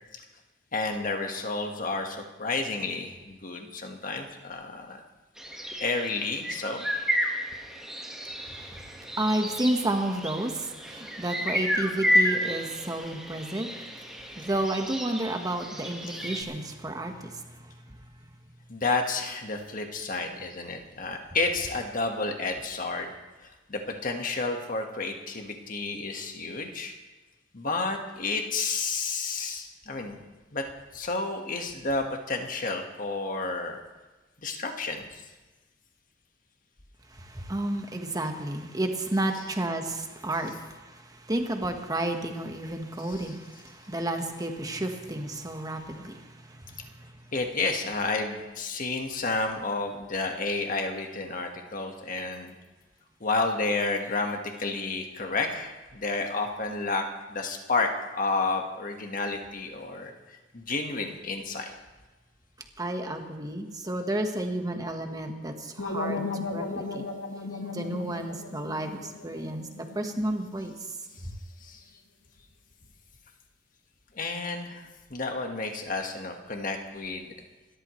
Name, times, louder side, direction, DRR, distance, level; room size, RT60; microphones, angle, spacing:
voice 1, 0.7-5.0 5.8-6.8 18.7-23.1 23.4-26.9 27.5-30.2 30.5-30.6 30.9-33.8 34.4-35.2 43.0-43.3 47.3-52.5 53.2-61.7 71.6-71.8 74.1-77.3, left 3 dB, 45° left, 3 dB, 1.5 m, -31 dB
sound 1, 5.4-16.4, equal, 5° right, 1.5 m, -31 dB
voice 2, 9.2-13.7 14.3-17.4 37.2-40.6 40.8-41.0 41.3-46.6 62.8-67.1 67.7-69.7 69.9-70.7, right 1 dB, 20° right, 4 dB, 1.3 m, -31 dB
sound 2, 65.8-70.7, left 3 dB, 80° left, 1.5 m, -36 dB
28.0 x 13.0 x 3.2 m, 1.2 s
head